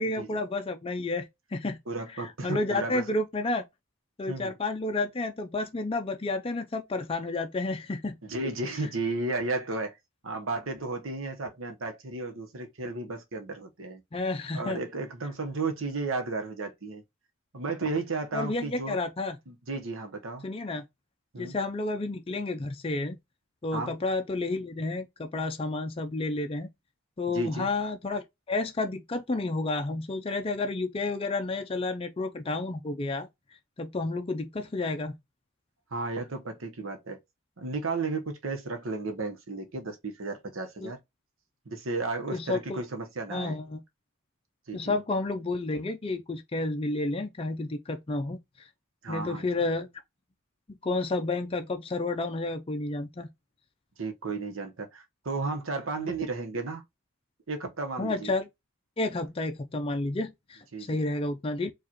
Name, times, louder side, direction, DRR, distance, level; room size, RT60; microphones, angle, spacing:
voice 1, 0.0-1.8 2.2-3.6 4.2-8.2 14.1-14.8 18.3-19.4 20.4-20.8 21.4-23.2 23.6-26.7 27.2-33.3 33.8-35.2 40.8-40.9 42.3-42.8 43.3-43.8 44.7-48.4 49.1-49.9 50.7-53.3 56.0-56.1 58.0-58.5 59.0-61.7, left 2 dB, 25° left, 0.4 m, -31 dB
voice 2, 1.9-3.0 4.3-4.5 8.2-10.0 10.2-14.0 14.5-17.0 17.5-19.0 19.5-20.5 21.3-21.6 23.7-23.9 27.3-27.7 35.9-37.2 37.6-41.0 41.7-43.6 44.7-45.0 49.0-49.4 54.0-56.8 57.5-58.3 60.7-61.0, right 3 dB, 70° right, 1.0 m, -33 dB
4.7 x 2.5 x 2.9 m
head